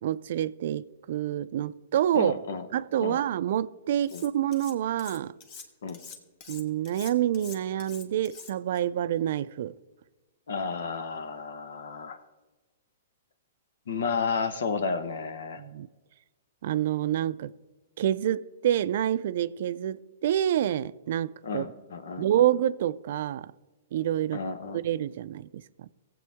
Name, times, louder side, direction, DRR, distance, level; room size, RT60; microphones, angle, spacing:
voice 1, 0.0-2.4 2.7-5.3 6.5-9.7 15.6-15.9 16.6-17.5 18.0-21.7 22.2-23.5 23.9-24.4 24.7-25.9, right 11 dB, 60° right, 0.4 m, -27 dB
voice 2, 2.1-2.7 3.0-3.2 4.1-4.2 5.8-6.0 10.5-12.2 13.9-15.6 21.4-22.3 24.3-24.8, left 5 dB, 80° left, 1.1 m, -32 dB
Cutlery silverware, 4.0-4.7 5.0-8.8, left 6 dB, 40° left, 1.4 m, -45 dB
17.5 x 7.8 x 3.6 m
hypercardioid pair, 140°, 0 cm